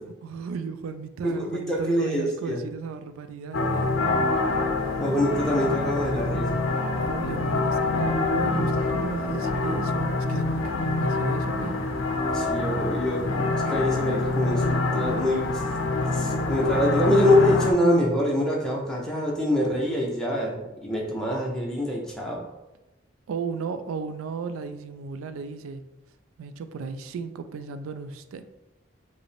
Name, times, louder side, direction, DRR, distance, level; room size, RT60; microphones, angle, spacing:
voice 1, 0.2-4.0 6.9-11.8 23.3-25.8 26.4-28.4, right 5 dB, 90° right, 10 dB, 0.3 m, -35 dB
voice 2, 1.2-2.6 5.0-6.6 12.3-15.6 16.1-22.5, left 1 dB, 5° left, -3 dB, 0.6 m, -25 dB
sound 1, 3.5-17.7, left 2 dB, 70° left, 0.5 m, -26 dB
4.9 x 2.0 x 3.2 m, 0.99 s
head